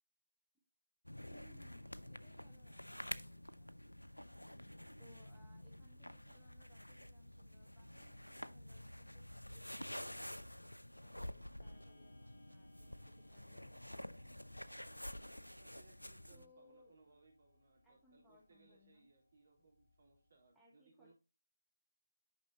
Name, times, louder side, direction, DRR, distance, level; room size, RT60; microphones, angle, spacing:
sound 1, 1.1-16.5, left 1 dB, 85° left, 0.5 m, -50 dB
voice 1, 1.3-3.8 5.0-10.4 11.0-14.3 16.3-16.9 17.8-19.1 20.5-21.1, equal, ahead, -6 dB, 1.3 m, -69 dB
Clock, 11.6-20.6, left 1 dB, 55° left, 1.0 m, -69 dB
voice 2, 15.6-21.1, right 3 dB, 45° right, -2 dB, 3.6 m, -68 dB
10.0 x 5.4 x 2.9 m, 0.29 s
figure-of-eight pair, 150°, 0 cm